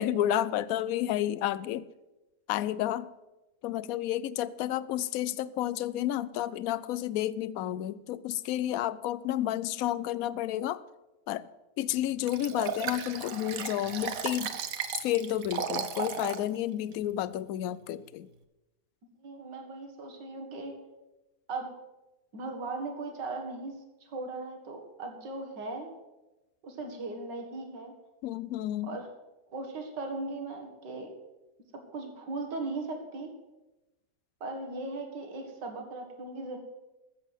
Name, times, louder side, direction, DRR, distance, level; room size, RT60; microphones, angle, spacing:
voice 1, 0.0-1.9 2.5-3.1 3.6-10.8 11.3-11.5 11.8-14.5 14.9-18.3 28.2-29.0, left 12 dB, 70° left, 18 dB, 0.9 m, -31 dB
Liquid, 12.3-16.4 16.9-17.0, right 7 dB, 60° right, 1.2 m, -35 dB
voice 2, 19.2-20.8 21.5-21.7 22.3-25.9 26.6-27.9 28.8-29.1 29.5-31.1 31.9-33.3 34.4-36.6, right 3 dB, 80° right, 4 dB, 2.4 m, -38 dB
13.0 x 7.4 x 8.0 m, 1.0 s
omnidirectional pair, 1.9 m